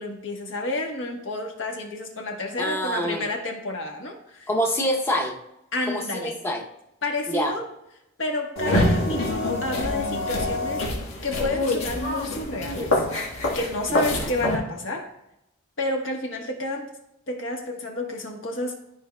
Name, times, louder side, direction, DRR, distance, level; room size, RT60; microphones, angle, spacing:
voice 1, 0.0-4.5 5.7-6.3 7.0-7.6 8.2-10.9 11.2-13.0 13.5-15.1 15.8-16.9 17.3-18.7, left 2 dB, 65° left, 1 dB, 1.3 m, -30 dB
voice 2, 2.6-3.3 4.5-5.4 5.9-6.7 7.3-7.6 14.1-14.3, equal, 10° left, 0 dB, 0.8 m, -26 dB
sound 1, 8.6-14.6, left 1 dB, 85° left, 1.6 m, -25 dB
12.5 x 4.5 x 2.3 m, 0.87 s
head